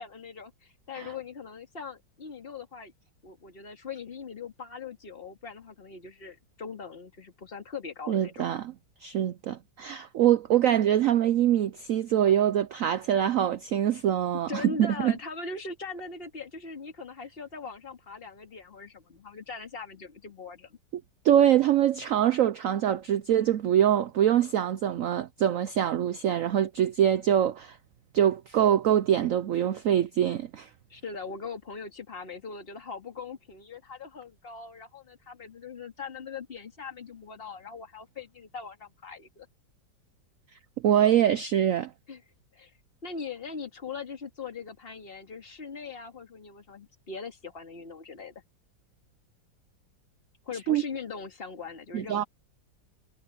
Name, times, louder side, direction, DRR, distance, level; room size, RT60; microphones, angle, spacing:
voice 1, 0.0-2.9 3.2-8.6 14.5-20.8 30.9-39.5 42.1-42.2 42.5-42.7 43.0-48.3 50.5-52.3, left 5 dB, 30° left, 2.2 m, -41 dB
voice 2, 8.1-8.7 9.0-15.1 21.2-27.8 28.1-30.7 40.8-41.9 50.7-50.8 51.9-52.2, right 10 dB, 85° right, 0.7 m, -24 dB
omnidirectional pair, 2.0 m